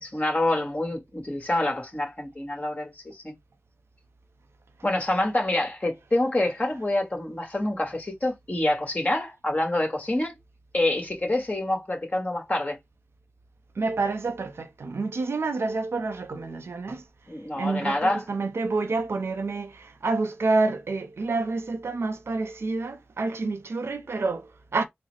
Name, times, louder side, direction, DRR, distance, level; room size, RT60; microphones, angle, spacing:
voice 1, 0.0-3.3 4.8-10.3 10.7-12.8 17.3-18.2, left 1 dB, 35° left, 1.6 m, -27 dB
voice 2, 13.8-17.0 17.6-24.8, right 3 dB, 85° right, 0.5 m, -28 dB
3.9 x 2.0 x 3.2 m
cardioid pair, 40°, 4 cm